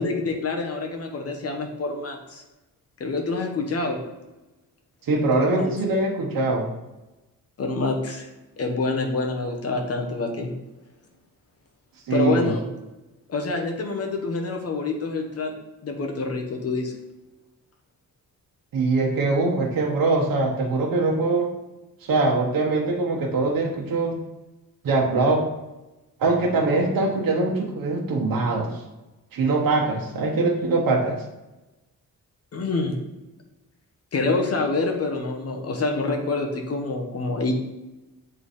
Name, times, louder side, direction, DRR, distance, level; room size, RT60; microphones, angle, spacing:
voice 1, 0.0-2.4 3.0-4.0 5.3-5.7 7.6-8.3 8.6-10.5 12.1-12.6 13.3-15.5 15.8-16.9 32.5-33.0 34.1-37.5, left 3 dB, 45° left, 3 dB, 1.0 m, -26 dB
voice 2, 5.1-6.7 12.1-12.5 18.7-21.5 22.0-24.2 24.8-25.4 26.2-28.7 29.3-31.2, right 3 dB, 75° right, -1 dB, 1.1 m, -22 dB
7.9 x 3.2 x 4.1 m, 1.0 s
wide cardioid pair, 180°, 34 cm